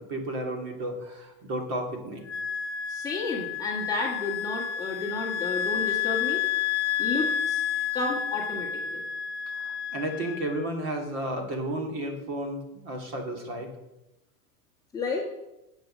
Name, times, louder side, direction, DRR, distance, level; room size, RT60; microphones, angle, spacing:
voice 1, 0.0-2.2 9.5-13.7, right 1 dB, 35° right, 2 dB, 2.6 m, -33 dB
Wind instrument woodwind instrument, 2.3-10.6, left 9 dB, 50° left, 0.7 m, -30 dB
voice 2, 2.9-6.4 7.0-7.6 7.9-9.0 14.9-15.3, left 3 dB, 10° left, -4 dB, 1.8 m, -32 dB
10.5 x 8.1 x 7.5 m, 0.95 s
supercardioid pair, 175°, 45 cm